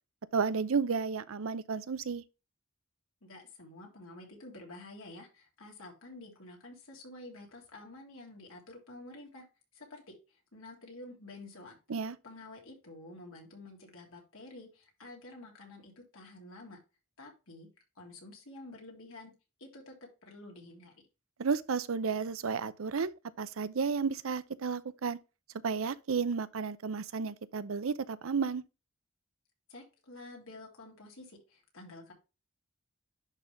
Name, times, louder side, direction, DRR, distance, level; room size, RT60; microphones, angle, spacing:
voice 1, 0.3-2.2 11.9-12.2 21.4-25.2 25.6-28.6, right 5 dB, 75° right, 0.6 m, -32 dB
voice 2, 3.2-9.4 9.7-11.8 12.2-16.8 17.2-17.7 18.0-19.3 19.6-20.9 29.7-32.1, left 2 dB, 75° left, 3.2 m, -50 dB
10.5 x 3.8 x 3.4 m
head